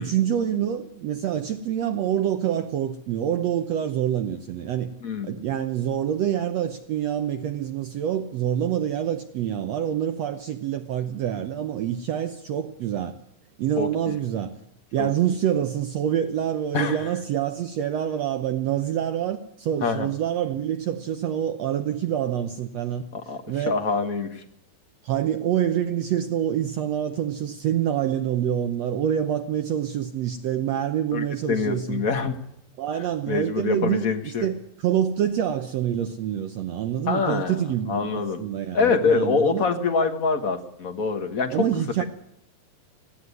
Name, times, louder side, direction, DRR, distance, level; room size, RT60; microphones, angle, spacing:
voice 1, 0.0-4.9 5.2-13.2 13.6-14.6 14.9-23.1 23.5-23.8 25.0-32.0 32.8-38.1 38.4-39.7 41.5-42.0, right 10 dB, 70° right, 1.6 m, -26 dB
voice 2, 5.0-5.4 13.8-14.1 15.0-15.1 16.7-17.1 19.8-20.1 23.1-24.4 31.1-32.3 33.3-34.5 37.1-38.4 38.7-41.7, left 5 dB, 55° left, 0.9 m, -25 dB
17.5 x 15.5 x 9.7 m
omnidirectional pair, 3.9 m